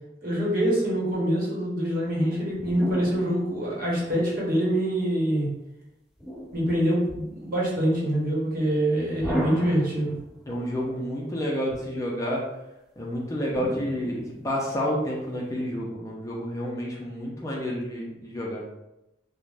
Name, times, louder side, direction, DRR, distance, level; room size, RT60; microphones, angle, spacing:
voice 1, 0.2-5.5 6.5-10.1, right 1 dB, 55° right, -5 dB, 1.0 m, -25 dB
sound 1, 2.2-4.5 6.2-7.4 9.2-10.5 13.5-15.0, equal, 10° right, 1.5 m, -36 dB
voice 2, 10.5-12.5 13.0-18.6, equal, 20° left, -3 dB, 0.4 m, -30 dB
2.5 x 2.1 x 3.2 m, 0.91 s
head